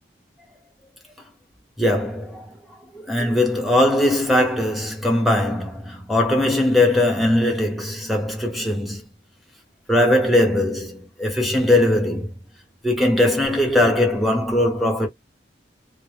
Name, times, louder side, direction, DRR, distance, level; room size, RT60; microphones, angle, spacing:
voice 1, 1.8-2.6 2.9-9.0 9.9-12.3 12.8-15.1, left 1 dB, ahead, 0.9 m, -20 dB
2.1 x 2.0 x 3.4 m
head